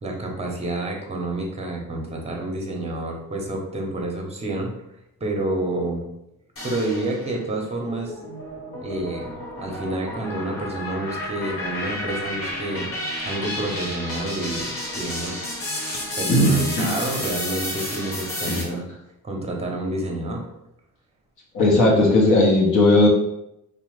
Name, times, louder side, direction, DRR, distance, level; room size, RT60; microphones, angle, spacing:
voice 1, 0.0-4.7 5.2-6.1 6.6-8.1 8.8-9.3 9.6-12.9 13.2-15.4 16.2-18.8 19.2-20.4, right 2 dB, 20° right, 1 dB, 0.7 m, -29 dB
sound 1, 6.6-7.4 7.9-18.6, left 1 dB, 40° left, 1.1 m, -31 dB
voice 2, 18.5-18.8 21.5-23.1, left 2 dB, 60° left, -3 dB, 0.8 m, -17 dB
2.7 x 2.1 x 3.1 m, 0.83 s
cardioid pair, 85°, 34 cm